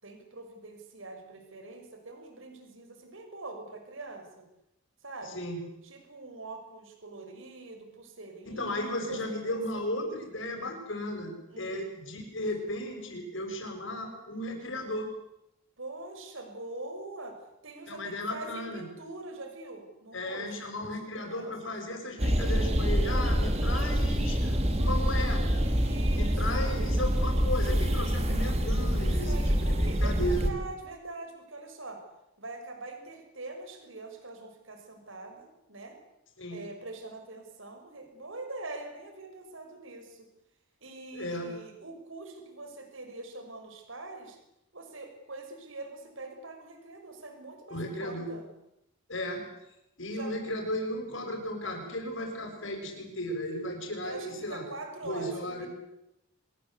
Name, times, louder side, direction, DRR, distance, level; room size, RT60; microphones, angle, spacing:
voice 1, 0.0-4.5 5.0-5.4 5.8-9.8 11.5-11.8 15.8-17.4 17.6-21.7 25.6-27.0 29.0-32.0 32.4-36.0 36.5-40.3 40.8-44.4 44.7-48.5 50.1-50.3 54.0-55.7, right 2 dB, 65° right, 5 dB, 6.0 m, -44 dB
voice 2, 8.5-15.1 17.9-18.9 20.1-25.7 26.1-30.5 36.4-36.6 41.1-41.5 47.7-48.3 49.1-49.4 50.0-54.6 55.0-55.7, left 1 dB, 60° left, 3 dB, 7.6 m, -35 dB
sound 1, 22.2-30.5, equal, 30° right, 2.7 m, -26 dB
25.5 x 21.5 x 8.4 m, 0.85 s
head